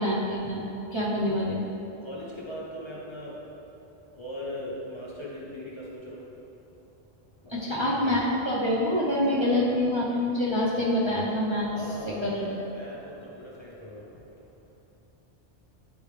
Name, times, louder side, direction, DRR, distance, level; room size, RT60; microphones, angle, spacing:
voice 1, 0.0-1.6 7.5-11.7 12.0-12.6, left 1 dB, 30° right, -7 dB, 0.6 m, -26 dB
voice 2, 2.0-3.4 4.1-6.3 7.4-8.2 9.4-9.7 11.7-14.2, equal, 30° left, -6 dB, 0.7 m, -40 dB
9.7 x 3.3 x 3.2 m, 2.9 s
omnidirectional pair, 1.2 m